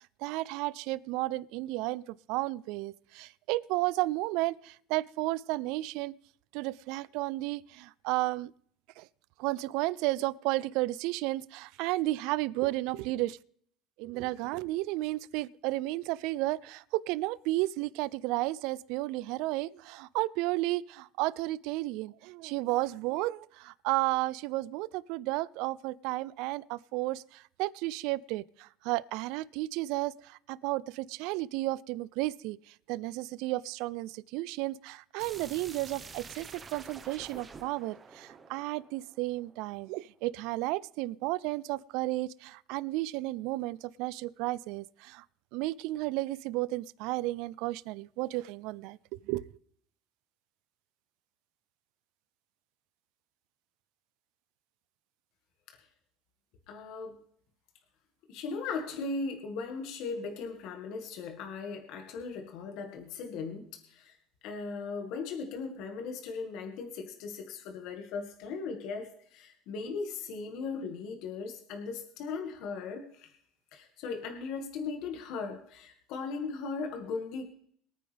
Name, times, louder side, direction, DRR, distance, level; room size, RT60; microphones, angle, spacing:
voice 1, 0.2-6.1 6.5-8.5 9.0-9.1 9.4-13.4 14.0-45.2 45.5-49.0 49.3-49.4, right 18 dB, 70° right, 0.4 m, -33 dB
sound 1, 35.2-39.9, right 5 dB, 20° right, 1.0 m, -48 dB
voice 2, 56.7-57.2 58.3-64.2 64.4-73.3 73.7-77.4, left 4 dB, 65° left, 1.8 m, -38 dB
23.0 x 9.4 x 3.4 m
cardioid pair, 145°, 0 cm